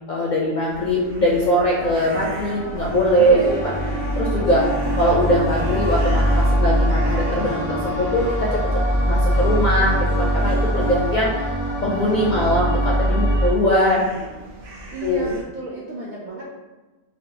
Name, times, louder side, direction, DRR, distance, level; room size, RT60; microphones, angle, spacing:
voice 1, 0.0-3.7 4.2-4.7 5.0-8.8 9.1-11.5 11.8-14.3 15.0-15.3, equal, 60° left, -4 dB, 0.5 m, -21 dB
sound 1, 0.7-15.4, equal, 80° right, 1.0 m, -38 dB
sound 2, 1.8-13.5, right 1 dB, 15° right, 0.6 m, -22 dB
voice 2, 3.2-4.1 14.9-16.5, right 1 dB, 60° right, -5 dB, 0.5 m, -31 dB
Harp, 3.3-11.2, left 4 dB, 90° left, 1.1 m, -37 dB
3.4 x 2.2 x 2.7 m, 1.2 s
omnidirectional pair, 1.2 m